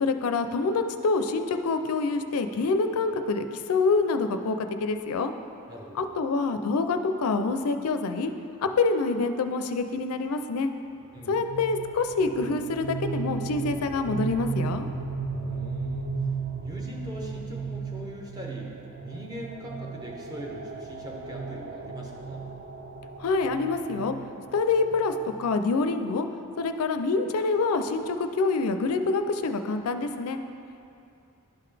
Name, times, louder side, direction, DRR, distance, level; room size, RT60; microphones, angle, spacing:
voice 1, 0.0-5.3 5.9-8.3 8.6-10.7 11.3-14.9 23.2-24.1 24.5-25.1 25.4-26.3 26.6-30.4, left 3 dB, 75° left, 8 dB, 0.4 m, -26 dB
voice 2, 5.7-6.2 11.1-11.4 15.3-16.3 16.6-22.4, equal, 15° right, -2 dB, 0.7 m, -42 dB
sound 1, 11.2-26.0, right 4 dB, 50° right, 0.4 m, -35 dB
11.5 x 3.8 x 3.3 m, 2.6 s
head